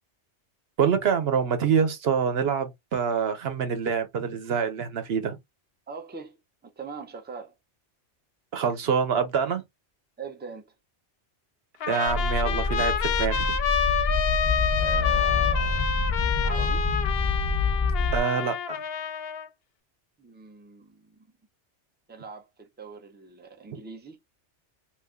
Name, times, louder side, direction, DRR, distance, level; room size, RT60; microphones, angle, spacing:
voice 1, 0.8-5.4 8.5-9.6 11.9-13.6 18.1-18.8, right 6 dB, 60° right, 1.0 m, -26 dB
voice 2, 5.9-6.4 6.6-7.5 10.2-10.7 14.8-15.9 16.4-16.9 20.2-21.3 22.1-24.2, right 5 dB, 15° right, 0.3 m, -41 dB
Trumpet, 11.8-19.5, left 7 dB, 65° left, 0.7 m, -28 dB
sound 1, 12.1-18.2, left 3 dB, 20° left, 0.6 m, -27 dB
3.2 x 2.5 x 3.6 m
omnidirectional pair, 1.2 m